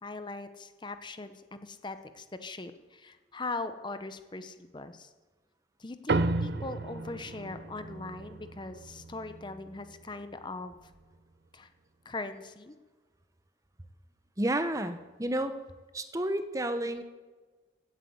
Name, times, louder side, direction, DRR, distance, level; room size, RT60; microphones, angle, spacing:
voice 1, 0.0-5.1 5.8-10.9 11.5-11.7 12.0-12.7, left 3 dB, 25° left, 10 dB, 0.8 m, -40 dB
sound 1, 6.1-10.8, right 2 dB, 70° right, 0.7 m, -34 dB
voice 2, 14.4-15.6 15.9-17.0, right 1 dB, 20° right, 9 dB, 0.9 m, -31 dB
16.0 x 9.3 x 7.9 m, 1.3 s
head